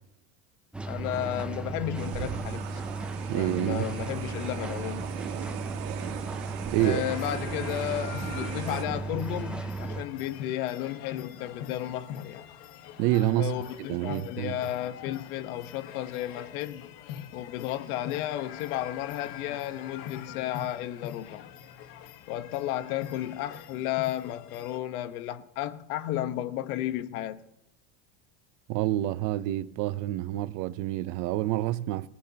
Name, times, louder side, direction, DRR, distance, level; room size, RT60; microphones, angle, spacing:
sound 1, 0.7-10.0, right 3 dB, 5° right, 0.5 m, -35 dB
voice 1, 0.9-2.8 3.3-5.1 6.8-12.5 13.3-16.9 17.3-21.5 22.3-27.4, left 13 dB, 85° left, 1.2 m, -33 dB
sound 2, 2.0-8.8, right 11 dB, 65° right, 1.8 m, -39 dB
voice 2, 3.3-3.9 6.7-7.0 13.0-13.5 13.9-14.5 28.7-32.1, right 14 dB, 45° right, 0.7 m, -27 dB
sound 3, 6.8-24.8, left 10 dB, 55° left, 1.4 m, -43 dB
26.0 x 17.0 x 2.9 m
cardioid pair, 160°, 42 cm